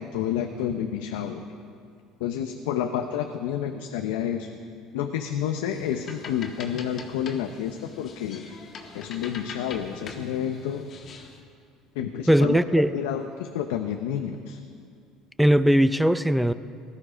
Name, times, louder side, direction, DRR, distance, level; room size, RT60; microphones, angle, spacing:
voice 1, 0.0-1.4 2.2-4.5 4.9-8.4 8.9-10.9 11.9-12.6 12.9-14.6, left 9 dB, 90° left, 5 dB, 0.7 m, -29 dB
sound 1, 5.7-11.4, left 4 dB, 45° left, 1.9 m, -43 dB
voice 2, 12.3-12.9 15.4-16.5, equal, 5° right, 13 dB, 0.5 m, -19 dB
18.5 x 13.0 x 5.0 m, 2.3 s
supercardioid pair, 100°, 0 cm